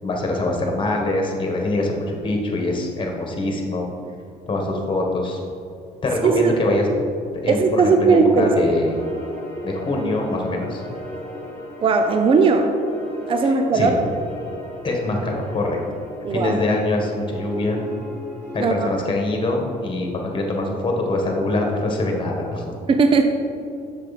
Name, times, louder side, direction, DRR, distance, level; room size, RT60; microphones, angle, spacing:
voice 1, 0.0-3.9 4.5-5.4 6.0-6.9 7.4-9.0 9.6-10.8 13.4-13.9 14.8-15.8 16.3-17.8 18.5-22.6, left 2 dB, 30° left, 1 dB, 1.6 m, -24 dB
voice 2, 6.2-6.5 7.5-8.5 11.8-12.7 13.3-14.0 16.2-16.6 18.6-18.9 22.9-23.3, right 4 dB, 30° right, 5 dB, 0.5 m, -17 dB
sound 1, 8.3-18.6, equal, 15° left, 1.9 m, -36 dB
7.8 x 6.5 x 4.2 m, 2.4 s
cardioid pair, 110°, 17 cm